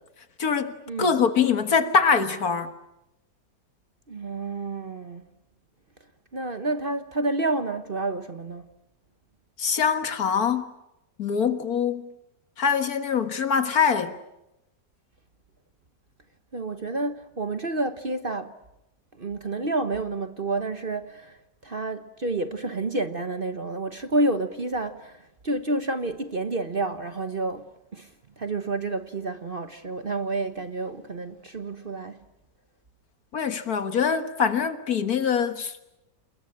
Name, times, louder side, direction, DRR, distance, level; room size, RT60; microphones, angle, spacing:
voice 1, 0.4-2.7 9.6-10.7 11.2-12.1 12.6-14.2 33.3-35.9, left 6 dB, 60° left, 2.0 m, -24 dB
voice 2, 4.1-5.2 6.3-8.7 16.5-18.5 19.2-28.1 28.4-32.2, right 2 dB, 35° right, 1.1 m, -29 dB
29.0 x 21.5 x 8.7 m
omnidirectional pair, 1.8 m